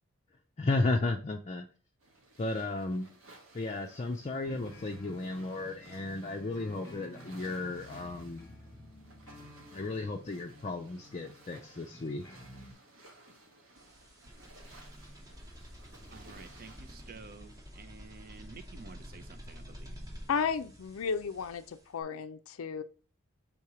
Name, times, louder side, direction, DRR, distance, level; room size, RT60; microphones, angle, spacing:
voice 1, 0.6-1.6 2.4-3.1 3.5-8.5 9.7-12.2, left 2 dB, 35° left, 0.4 m, -34 dB
sound 1, 2.0-17.1, right 2 dB, 90° right, 1.4 m, -58 dB
sound 2, 4.4-12.7, left 1 dB, 15° left, 1.0 m, -52 dB
sound 3, 13.8-22.0, equal, 20° right, 0.9 m, -49 dB
voice 2, 16.1-20.0, right 4 dB, 45° right, 0.5 m, -51 dB
voice 3, 20.3-22.8, left 6 dB, 90° left, 0.4 m, -33 dB
3.8 x 2.9 x 4.8 m
head